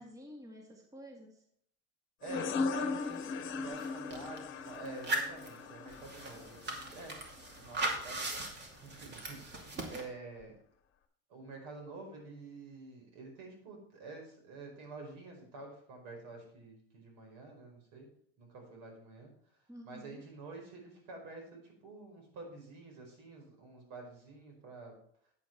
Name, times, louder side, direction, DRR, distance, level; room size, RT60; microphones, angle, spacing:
voice 1, 0.0-1.4 9.8-10.1 19.7-20.2, equal, 10° right, 2 dB, 1.8 m, -51 dB
sound 1, 2.2-7.6, left 4 dB, 40° left, 1.3 m, -38 dB
voice 2, 2.2-7.2 7.5-10.5 11.3-18.1 18.4-19.6 19.8-24.9, right 3 dB, 65° right, 2 dB, 4.9 m, -49 dB
sound 2, 3.2-3.3 3.5-4.4 4.9-10.0, right 2 dB, 35° right, 2.6 m, -39 dB
9.4 x 8.5 x 4.5 m, 0.65 s
supercardioid pair, 100°, 31 cm